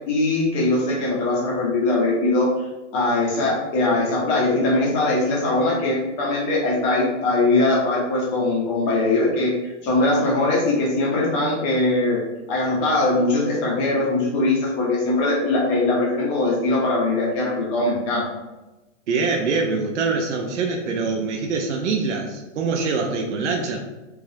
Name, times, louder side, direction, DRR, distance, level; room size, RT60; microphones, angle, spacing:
voice 1, 0.1-2.5 2.9-9.5 9.8-12.2 12.5-18.2, left 2 dB, 15° left, -4 dB, 0.7 m, -21 dB
voice 2, 19.1-23.8, right 4 dB, 70° right, 1 dB, 0.7 m, -24 dB
3.5 x 3.3 x 2.7 m, 1.0 s
hypercardioid pair, 160°, 37 cm